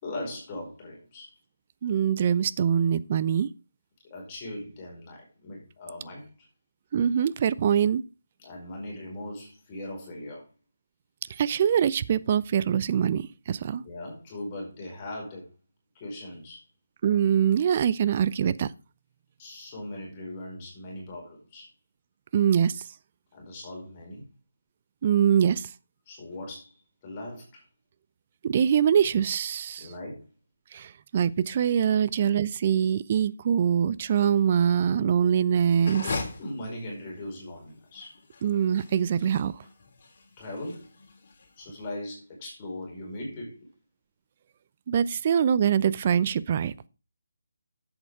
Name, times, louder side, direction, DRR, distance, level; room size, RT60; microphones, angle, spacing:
voice 1, 0.0-1.3 4.1-6.3 8.4-10.5 13.8-15.5 15.9-16.6 19.4-21.7 23.3-24.2 26.1-26.7 27.0-27.6 29.8-30.3 31.8-32.1 36.4-38.2 40.4-40.8 41.6-43.7, left 1 dB, 25° left, 4.9 m, -39 dB
voice 2, 1.8-3.5 6.9-8.0 11.4-13.8 17.0-18.7 22.3-22.8 25.0-25.7 28.4-29.9 30.7-36.1 38.4-39.5 44.9-46.7, right 8 dB, 35° right, 0.6 m, -23 dB
sound 1, 35.7-41.8, left 4 dB, 40° left, 3.5 m, -39 dB
10.5 x 8.0 x 4.7 m
figure-of-eight pair, 150°, 0 cm